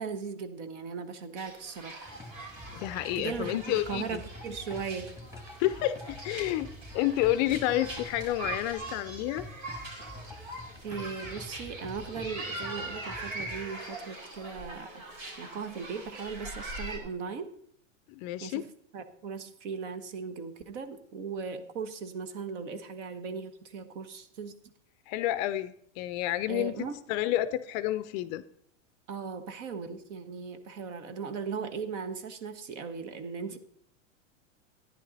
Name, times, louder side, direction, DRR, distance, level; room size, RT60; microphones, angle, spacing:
voice 1, 0.0-2.1 3.1-5.1 10.8-15.0 15.4-17.5 18.4-18.6 18.9-24.5 26.5-27.0 29.1-33.6, right 5 dB, 65° right, 10 dB, 1.4 m, -38 dB
sound 1, 1.4-17.0, right 2 dB, 90° right, 4.3 m, -42 dB
sound 2, 2.1-13.7, left 1 dB, 10° right, 1.5 m, -47 dB
voice 2, 2.7-4.2 5.6-6.7 6.9-9.5 18.1-18.6 25.1-28.4, left 14 dB, 35° left, 14 dB, 0.4 m, -30 dB
11.5 x 10.0 x 4.0 m, 0.66 s
supercardioid pair, 135°, 39 cm